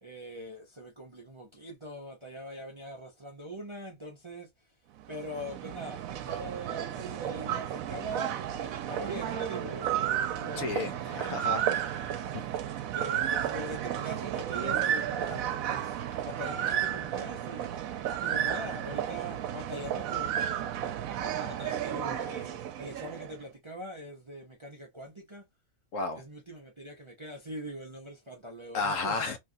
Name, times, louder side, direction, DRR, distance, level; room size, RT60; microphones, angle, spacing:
voice 1, 0.0-4.5 5.1-11.7 12.9-17.8 18.2-20.6 21.2-25.4 26.1-29.2, right 1 dB, 30° right, 0.6 m, -42 dB
sound 1, 5.0-23.4, right 10 dB, 80° right, 1.0 m, -33 dB
voice 2, 10.6-12.4 25.9-26.2 28.7-29.4, left 3 dB, 70° left, 1.0 m, -33 dB
3.2 x 2.4 x 2.6 m
omnidirectional pair, 1.5 m